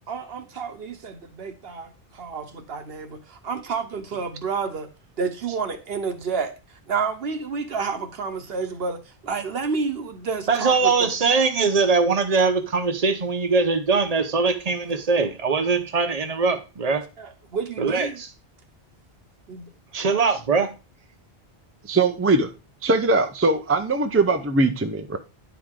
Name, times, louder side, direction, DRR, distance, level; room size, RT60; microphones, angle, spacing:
voice 1, 0.1-4.9 5.2-6.5 6.9-11.1 17.2-18.2 19.5-19.7, right 5 dB, 65° right, 1.2 m, -30 dB
voice 2, 10.5-17.1 17.8-18.3 19.9-20.7, right 4 dB, 40° right, 0.9 m, -22 dB
voice 3, 21.9-22.5 22.8-25.2, right 3 dB, 20° right, 0.3 m, -21 dB
10.0 x 4.8 x 3.7 m
omnidirectional pair, 1.1 m